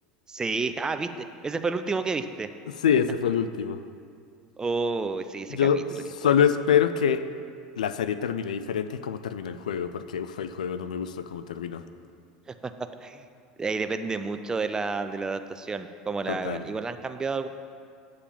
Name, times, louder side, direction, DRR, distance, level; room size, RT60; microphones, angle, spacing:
voice 1, 0.3-1.1 1.4-2.5 4.6-5.7 6.2-6.3 12.5-12.6 13.0-13.3 13.6-17.5, right 4 dB, 15° right, 9 dB, 0.4 m, -30 dB
voice 2, 2.8-3.8 5.5-5.8 6.1-7.3 7.8-11.8 16.3-16.7, left 8 dB, 80° left, 12 dB, 0.3 m, -25 dB
8.4 x 4.9 x 5.7 m, 2.3 s
hypercardioid pair, 85°, 4 cm